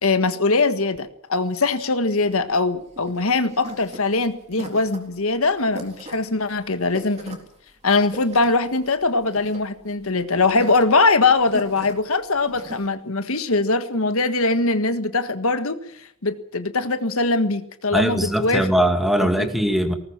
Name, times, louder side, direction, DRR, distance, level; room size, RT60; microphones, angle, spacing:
voice 1, 0.0-7.4 7.8-15.8 16.2-18.7 19.4-19.5, left 3 dB, 70° left, 10 dB, 1.6 m, -21 dB
sound 1, 2.3-12.9, right 1 dB, 30° right, 3.8 m, -40 dB
voice 2, 17.9-19.9, equal, ahead, 6 dB, 2.1 m, -20 dB
19.5 x 19.5 x 7.5 m, 0.67 s
head